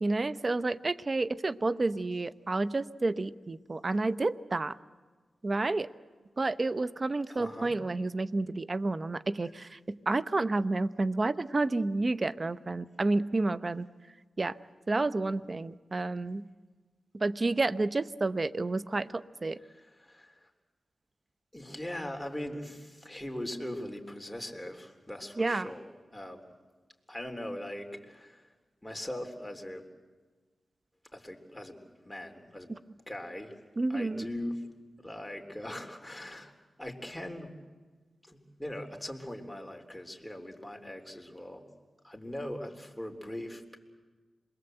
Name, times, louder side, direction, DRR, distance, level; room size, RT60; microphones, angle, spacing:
voice 1, 0.0-4.8 5.4-5.9 6.4-13.8 14.4-14.6 14.9-16.5 17.1-19.6 25.4-25.7 32.7-32.8 33.8-34.3, right 2 dB, 45° right, 15 dB, 0.8 m, -30 dB
voice 2, 7.3-7.8 19.7-20.5 21.5-26.5 27.1-28.5 28.8-29.9 31.1-32.7 33.1-33.5 33.9-34.6 35.0-36.5 36.8-37.6 38.3-41.6 42.0-43.8, left 1 dB, 10° left, 3 dB, 3.9 m, -40 dB
27.5 x 21.5 x 8.0 m, 1.4 s
cardioid pair, 45°, 0 cm